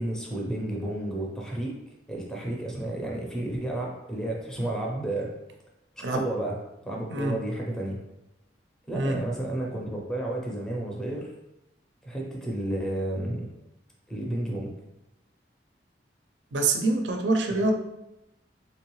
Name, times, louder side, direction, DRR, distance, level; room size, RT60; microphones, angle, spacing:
voice 1, 0.0-1.8 2.1-5.3 6.0-6.6 6.9-8.0 8.9-11.3 12.0-13.5 14.1-14.7, right 1 dB, 5° left, -2 dB, 0.6 m, -31 dB
voice 2, 16.5-17.7, right 2 dB, 75° right, 4 dB, 0.5 m, -25 dB
3.6 x 3.0 x 3.0 m, 0.92 s
head